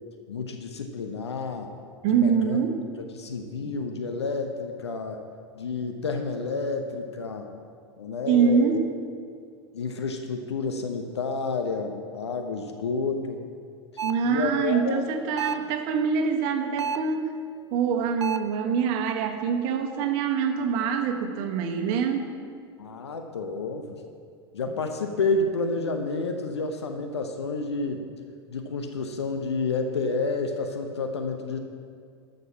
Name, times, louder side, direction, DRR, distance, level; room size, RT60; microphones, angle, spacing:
voice 1, 0.3-1.7 2.1-2.6 3.1-5.2 5.5-7.5 8.0-8.8 9.7-13.4 14.2-15.1 22.8-24.0 24.5-28.1 28.5-31.6, left 3 dB, 75° left, 5 dB, 0.9 m, -30 dB
voice 2, 2.0-2.8 8.3-8.8 14.0-17.3 17.7-22.3, right 6 dB, 45° right, 5 dB, 1.3 m, -25 dB
sound 1, 14.0-14.3 15.4-15.7 16.8-17.2 18.2-18.6, right 6 dB, 80° right, 0.4 m, -31 dB
13.0 x 6.6 x 5.8 m, 2.2 s
figure-of-eight pair, 85°, 14 cm